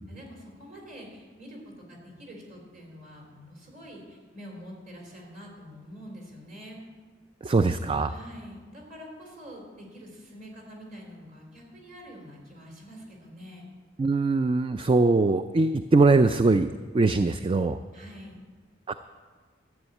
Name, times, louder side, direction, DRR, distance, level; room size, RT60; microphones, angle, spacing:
voice 1, 0.1-1.6 1.9-6.8 8.1-13.7 17.9-18.4, equal, 45° right, 0 dB, 3.6 m, -45 dB
voice 2, 7.4-8.1 14.0-16.7 16.9-17.8 18.9-19.0, right 3 dB, 30° right, 10 dB, 0.3 m, -22 dB
12.5 x 7.2 x 9.0 m, 1.5 s
head